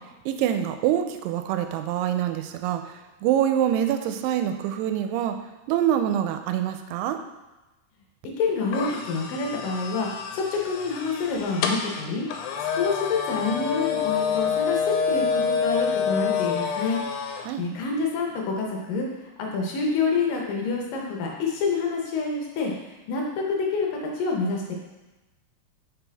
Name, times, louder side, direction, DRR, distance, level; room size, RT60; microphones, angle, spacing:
voice 1, 0.3-5.4 5.7-7.2 17.4-17.6, right 10 dB, 85° right, 7 dB, 2.6 m, -25 dB
voice 2, 8.4-12.3 12.7-17.0 17.6-24.7, left 4 dB, 70° left, 0 dB, 2.3 m, -27 dB
sound 1, 8.7-17.5, left 6 dB, 90° left, 2.6 m, -27 dB
6.1 x 5.8 x 3.4 m, 1.1 s
omnidirectional pair, 4.6 m